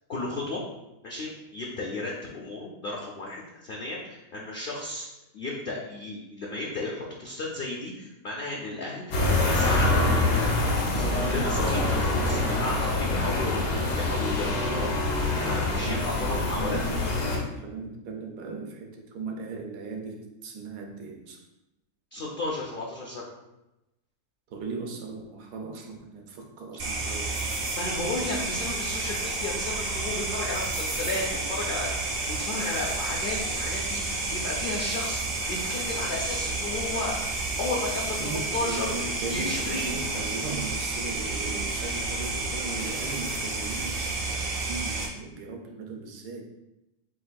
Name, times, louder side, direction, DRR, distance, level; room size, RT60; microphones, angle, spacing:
voice 1, 0.1-0.6 1.0-5.1 5.3-9.0 9.4-16.8 22.1-23.2 27.8-37.2 37.6-40.0, left 2 dB, 70° left, -3 dB, 0.5 m, -34 dB
sound 1, 9.1-17.4, left 2 dB, 85° left, 1.4 m, -25 dB
voice 2, 15.8-16.2 16.5-21.4 24.5-27.7 38.2-46.4, right 4 dB, 85° right, 2 dB, 1.2 m, -38 dB
sound 2, 26.8-45.1, right 3 dB, 50° right, 0.7 m, -31 dB
7.5 x 2.6 x 2.2 m, 0.95 s
omnidirectional pair, 1.6 m